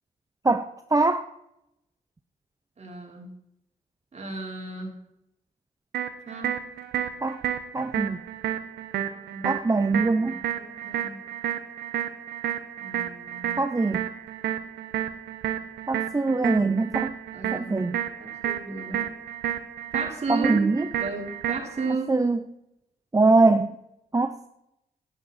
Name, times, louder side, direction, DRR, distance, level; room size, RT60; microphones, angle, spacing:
voice 1, 0.4-1.3 7.2-7.4 7.7-8.2 9.4-10.4 13.6-14.1 15.9-17.1 17.5-18.0 20.3-20.8 22.1-22.4 23.1-23.8 24.1-24.5, right 3 dB, 20° right, 8 dB, 0.7 m, -23 dB
voice 2, 2.8-3.3 4.1-5.0 6.3-6.6 9.3-9.6 10.0-11.2 12.8-13.6 17.3-17.8 18.2-19.1 19.9-20.6 21.0-22.1, right 3 dB, 40° right, 0 dB, 3.9 m, -34 dB
sound 1, 5.9-21.9, right 10 dB, 85° right, 1.0 m, -31 dB
11.0 x 10.5 x 4.3 m, 0.82 s
cardioid pair, 60°, 16 cm